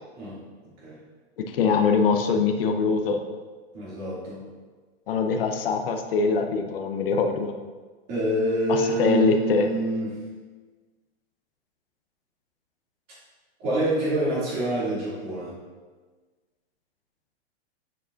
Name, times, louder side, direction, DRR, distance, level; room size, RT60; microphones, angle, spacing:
voice 1, 1.5-3.2 5.1-7.5 8.7-9.7, left 5 dB, 55° left, 5 dB, 0.8 m, -23 dB
voice 2, 3.7-4.4 8.1-10.1 13.6-15.6, right 1 dB, 25° right, -8 dB, 2.6 m, -26 dB
10.0 x 7.7 x 2.6 m, 1.4 s
supercardioid pair, 180°, 33 cm